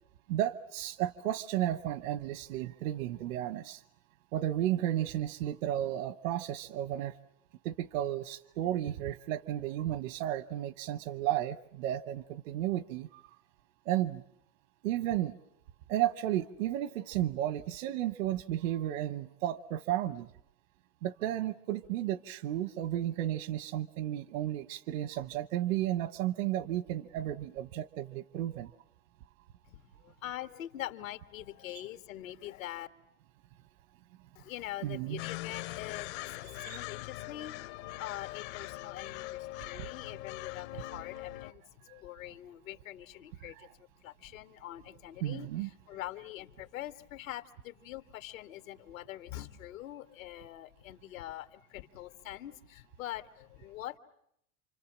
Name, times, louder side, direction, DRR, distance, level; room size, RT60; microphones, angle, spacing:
voice 1, 0.3-3.8 4.3-7.1 7.6-13.2 13.8-14.2 14.8-15.3 15.9-20.3 21.0-28.7 34.8-35.2 36.5-36.7 45.2-45.7, right 13 dB, 80° right, 14 dB, 1.1 m, -33 dB
voice 2, 29.7-32.9 34.4-54.0, left 14 dB, 85° left, 9 dB, 1.7 m, -44 dB
sound 1, 35.2-41.5, left 18 dB, 60° left, 1.0 m, -42 dB
28.5 x 26.0 x 7.4 m, 0.75 s
supercardioid pair, 135°, 39 cm